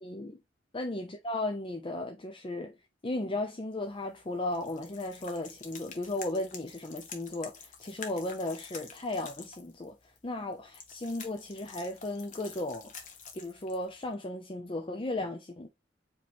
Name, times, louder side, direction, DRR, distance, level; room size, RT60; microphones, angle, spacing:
voice 1, 0.0-0.4 0.7-2.8 3.0-12.9 13.3-15.7, left 2 dB, 30° left, 0.6 m, -35 dB
sound 1, 3.8-14.1, left 5 dB, 45° left, 1.1 m, -48 dB
5.0 x 3.1 x 3.5 m
head